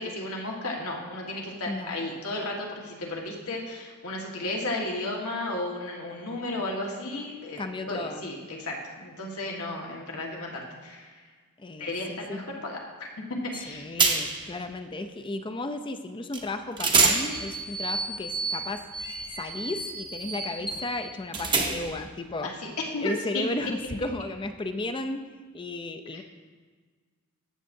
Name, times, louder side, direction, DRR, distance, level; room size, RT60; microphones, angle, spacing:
voice 1, 0.0-7.6 7.9-11.2 11.8-13.1 13.5-13.9 22.4-23.4 26.1-26.2, left 2 dB, 80° left, -1 dB, 1.5 m, -34 dB
voice 2, 7.6-8.3 11.6-12.5 13.5-18.9 19.3-22.5 23.0-25.2 25.5-26.2, left 2 dB, 25° left, 8 dB, 0.5 m, -34 dB
sound 1, 13.5-13.7 14.0-14.5 16.3-16.4 16.8-22.1, right 4 dB, 20° right, 0.8 m, -28 dB
14.0 x 7.4 x 2.7 m, 1.5 s
head